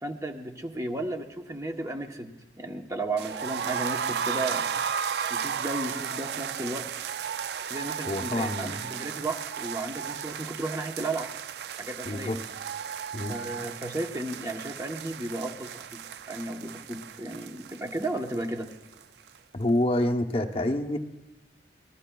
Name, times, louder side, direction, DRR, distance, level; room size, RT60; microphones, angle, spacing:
voice 1, 0.0-4.8 5.3-6.9 7.7-11.3 11.8-12.4 13.3-16.0 16.3-18.7, right 2 dB, 20° right, 4 dB, 0.8 m, -34 dB
sound 1, 3.2-19.0 19.3-19.4 19.7-19.8, right 7 dB, 65° right, 0.4 m, -34 dB
voice 2, 8.1-9.0 12.0-12.4 13.1-13.4 19.5-21.0, left 1 dB, 30° left, 4 dB, 0.7 m, -27 dB
23.5 x 19.5 x 2.3 m, 1.1 s
head